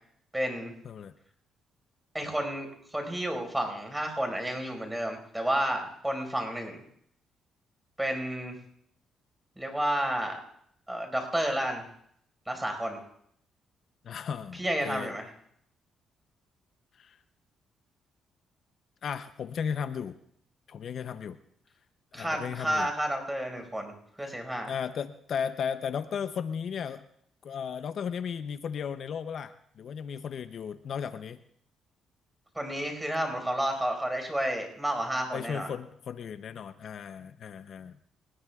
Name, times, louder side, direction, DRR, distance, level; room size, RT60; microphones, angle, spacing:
voice 1, 0.3-0.7 2.1-6.8 8.0-8.6 9.6-10.4 10.9-11.8 12.5-13.0 14.5-15.3 22.1-24.7 32.5-35.7, right 1 dB, 10° right, 4 dB, 4.9 m, -31 dB
voice 2, 14.0-15.1 17.0-17.2 19.0-20.2 20.7-21.4 22.1-22.9 24.7-27.0 27.4-31.4 35.3-38.0, left 7 dB, 60° left, 11 dB, 0.6 m, -35 dB
28.5 x 19.0 x 2.4 m, 0.69 s
cardioid pair, 90°, 0 cm